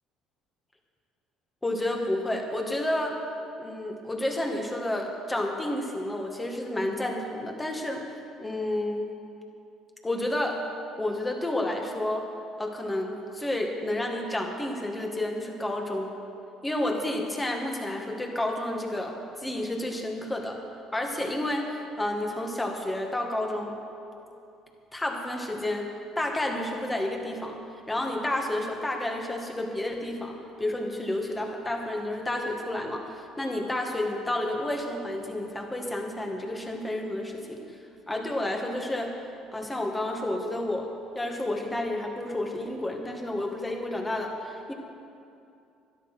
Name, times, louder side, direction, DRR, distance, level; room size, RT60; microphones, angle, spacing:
voice 1, 1.6-3.2 3.6-8.1 8.4-9.1 10.0-10.6 11.0-12.3 12.6-16.1 16.6-20.6 20.9-23.8 24.9-27.6 27.9-37.6 38.1-39.2 39.5-40.9 41.1-44.7, left 1 dB, 15° left, 2 dB, 2.1 m, -30 dB
12.5 x 10.5 x 5.8 m, 2.6 s
supercardioid pair, 75°, 0 cm